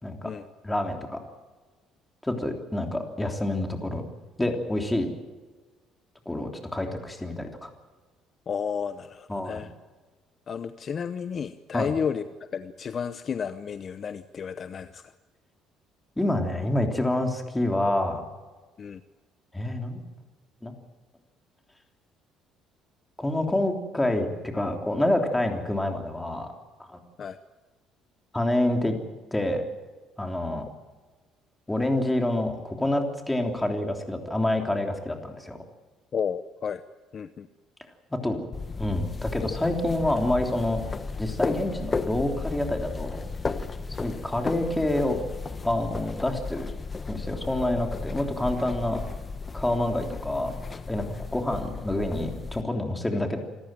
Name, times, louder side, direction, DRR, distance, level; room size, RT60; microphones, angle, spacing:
voice 1, 0.6-1.2 2.2-4.0 4.4-5.1 6.2-7.7 9.3-9.6 11.7-12.0 16.2-18.2 19.5-20.0 20.6-20.7 23.2-26.5 26.9-27.0 28.3-29.0 29.3-29.6 30.2-30.6 31.7-35.6 38.1-38.5 38.8-40.8 41.2-43.2 43.9-45.2 45.6-46.7 47.1-49.0 49.5-50.5 50.9-51.1 51.3-53.4, left 1 dB, 10° left, 3 dB, 3.4 m, -27 dB
voice 2, 8.5-9.7 10.5-12.2 12.5-15.0 18.8-19.0 27.2-27.4 36.1-36.8 37.1-37.5, left 7 dB, 40° left, 11 dB, 0.8 m, -32 dB
sound 1, 38.5-52.6, left 4 dB, 25° left, 1.2 m, -34 dB
27.0 x 14.0 x 9.0 m, 1.3 s
cardioid pair, 120°, 0 cm